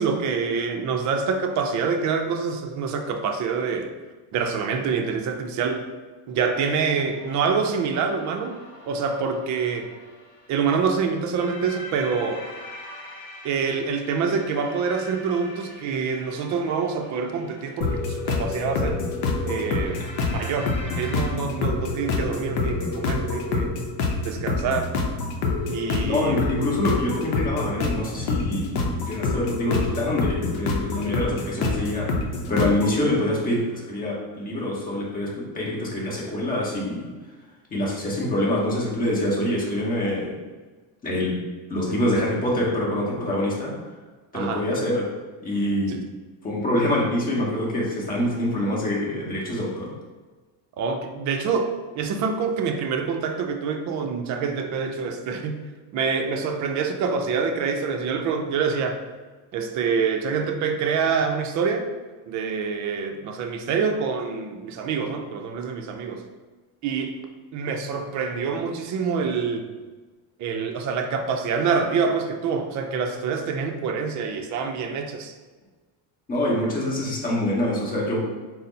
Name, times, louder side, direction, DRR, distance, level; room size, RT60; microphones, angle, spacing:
voice 1, 0.0-3.9 4.3-5.8 6.3-8.6 8.9-9.9 10.5-12.4 13.4-19.0 19.4-20.0 20.3-23.7 24.2-24.9 25.7-26.4 44.3-44.6 45.9-46.0 50.8-55.6 55.9-59.0 59.5-61.9 62.3-66.2 66.8-67.2 67.5-69.7 70.4-75.3, right 5 dB, 40° right, 5 dB, 0.5 m, -26 dB
sound 1, 6.9-21.3, left 1 dB, 45° left, 1.2 m, -44 dB
sound 2, 17.8-33.0, left 3 dB, 65° left, 0.7 m, -27 dB
voice 2, 26.0-37.1 37.7-40.3 41.0-41.4 41.7-43.7 44.3-45.1 45.4-46.0 46.4-49.9 76.3-78.2, left 1 dB, 20° left, -4 dB, 1.0 m, -25 dB
4.1 x 2.1 x 3.9 m, 1.3 s
cardioid pair, 140°, 44 cm